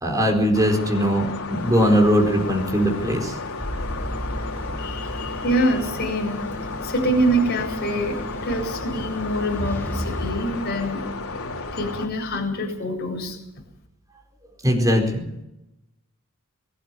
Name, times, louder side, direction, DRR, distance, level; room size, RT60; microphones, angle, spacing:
voice 1, 0.0-3.3 14.6-15.4, equal, 15° right, 2 dB, 4.6 m, -20 dB
sound 1, 0.5-12.1, left 3 dB, 80° left, 3.6 m, -33 dB
Cinemalayer rainandthunder, 1.5-10.3, equal, 10° left, 5.7 m, -34 dB
voice 2, 4.8-11.0 11.7-13.4, right 1 dB, 50° left, 1 dB, 7.9 m, -25 dB
22.0 x 12.5 x 9.7 m, 0.86 s
head